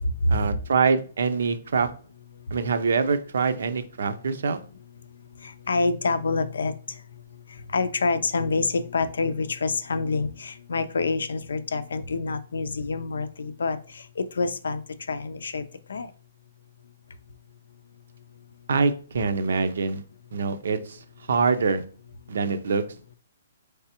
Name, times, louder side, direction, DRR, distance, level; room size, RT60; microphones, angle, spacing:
voice 1, 0.3-1.9 2.5-4.6 18.7-20.0 20.3-21.8 22.3-22.8, right 5 dB, 70° right, 11 dB, 0.6 m, -24 dB
voice 2, 5.4-6.7 7.7-14.8 15.1-15.6 15.9-16.1, left 3 dB, 85° left, 13 dB, 0.5 m, -27 dB
4.8 x 3.3 x 2.9 m, 0.41 s
hypercardioid pair, 160°, 0 cm